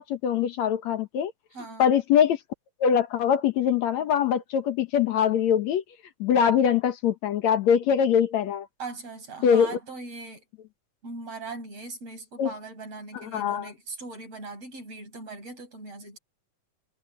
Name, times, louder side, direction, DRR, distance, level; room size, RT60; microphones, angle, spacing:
voice 1, 0.0-1.3 1.8-2.4 2.8-5.8 6.2-8.7 9.4-9.8 12.4-12.5 13.1-13.7, left 8 dB, 65° left, 2.3 m, -23 dB
voice 2, 1.5-1.9 8.8-10.4 11.0-16.2, right 3 dB, 50° right, 7.9 m, -40 dB
omnidirectional pair, 3.7 m